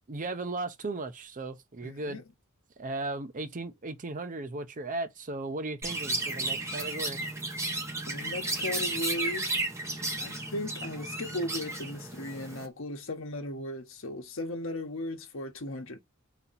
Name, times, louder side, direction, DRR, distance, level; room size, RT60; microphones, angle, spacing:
voice 1, 0.1-2.2 2.8-7.2, right 2 dB, 35° right, 0.6 m, -36 dB
voice 2, 1.8-2.3 6.3-6.5 8.1-9.6 10.2-16.0, left 1 dB, 65° left, 1.0 m, -37 dB
Chirp tweet, 5.8-12.7, right 2 dB, 15° right, 0.9 m, -33 dB
4.2 x 2.8 x 4.0 m
head